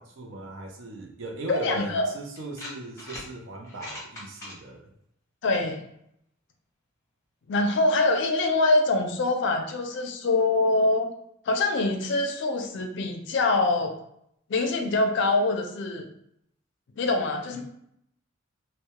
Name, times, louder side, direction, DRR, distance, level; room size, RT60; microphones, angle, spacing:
voice 1, 0.0-4.9 17.5-17.6, right 2 dB, 70° right, 2 dB, 0.5 m, -38 dB
voice 2, 1.5-2.1 5.4-5.8 7.5-11.1 11.5-13.9 14.5-16.1 17.0-17.6, left 2 dB, 60° left, 4 dB, 0.4 m, -24 dB
sound 1, 2.3-3.3 3.6-4.5, left 1 dB, 15° left, 0.7 m, -40 dB
2.2 x 2.1 x 2.8 m, 0.73 s
head